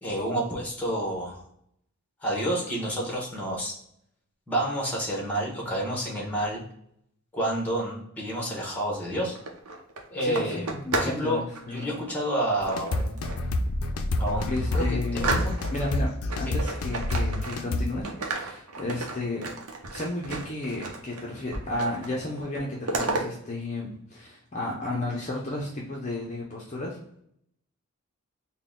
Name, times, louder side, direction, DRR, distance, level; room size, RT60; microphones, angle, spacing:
voice 1, 0.0-1.4 2.2-3.7 4.5-6.6 7.3-9.3 10.1-13.2 14.2-14.8 15.1-15.6 16.5-16.6, right 1 dB, 5° left, -2 dB, 1.0 m, -29 dB
sound 1, 9.2-11.2 11.5-11.9 12.7-13.5 13.9-14.0 14.4-15.9 16.3-17.8 18.0-21.2 21.5-22.1 22.4-23.2, right 3 dB, 90° right, 0.7 m, -33 dB
voice 2, 10.2-12.0 14.5-15.4 15.7-16.1 16.4-19.5 19.9-27.0, left 2 dB, 30° left, -3 dB, 0.6 m, -33 dB
sound 2, 12.6-17.9, left 2 dB, 85° left, 0.4 m, -28 dB
3.8 x 2.2 x 3.6 m, 0.71 s
head